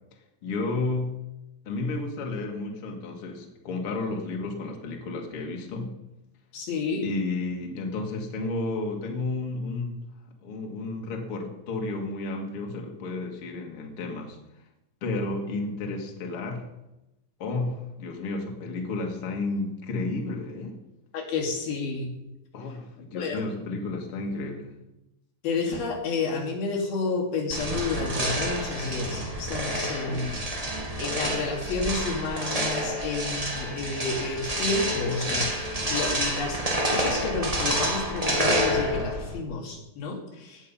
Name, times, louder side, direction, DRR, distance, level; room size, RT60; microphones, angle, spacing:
voice 1, 0.4-1.1 1.6-6.0 7.0-10.0 10.4-14.4 15.0-16.7 17.4-20.8 22.5-24.7 30.1-30.5, left 3 dB, 45° left, 1 dB, 2.5 m, -32 dB
voice 2, 6.5-7.1 21.1-22.1 23.1-23.4 25.4-30.4 31.0-36.6 36.9-40.7, left 4 dB, 85° left, -2 dB, 4.5 m, -30 dB
sound 1, 27.5-39.4, right 1 dB, 60° right, 0.3 m, -28 dB
17.5 x 9.8 x 5.7 m, 0.93 s
omnidirectional pair, 4.2 m